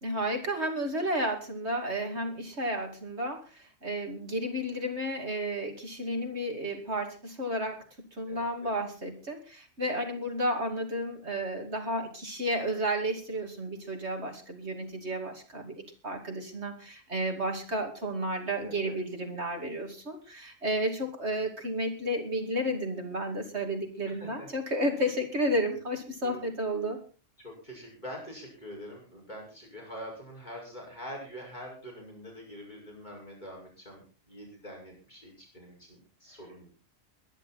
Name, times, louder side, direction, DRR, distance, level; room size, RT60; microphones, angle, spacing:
voice 1, 0.0-7.8 8.2-27.0, equal, 55° right, 4 dB, 3.0 m, -32 dB
voice 2, 8.3-8.7 18.6-18.9 24.1-24.5 26.2-26.5 27.4-36.7, equal, 35° left, -1 dB, 5.8 m, -45 dB
22.0 x 11.0 x 4.2 m, 0.35 s
omnidirectional pair, 1.4 m